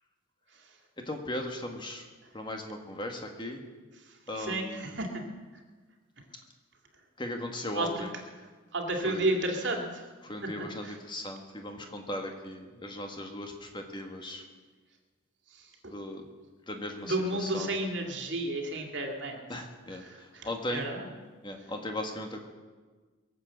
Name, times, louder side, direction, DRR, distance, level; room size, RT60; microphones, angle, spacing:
voice 1, 1.0-2.0 2.3-3.6 4.3-5.0 7.2-8.1 9.0-9.3 10.2-14.4 15.9-16.2 16.7-17.7 19.5-20.0 20.4-20.9 21.4-22.5, left 1 dB, 25° left, 3 dB, 1.6 m, -37 dB
voice 2, 4.4-5.1 7.7-8.1 8.7-9.9 10.4-10.5 10.8-11.0 17.0-19.4 20.0-21.0, right 1 dB, 60° right, 3 dB, 2.5 m, -32 dB
22.5 x 7.7 x 7.8 m, 1.4 s
head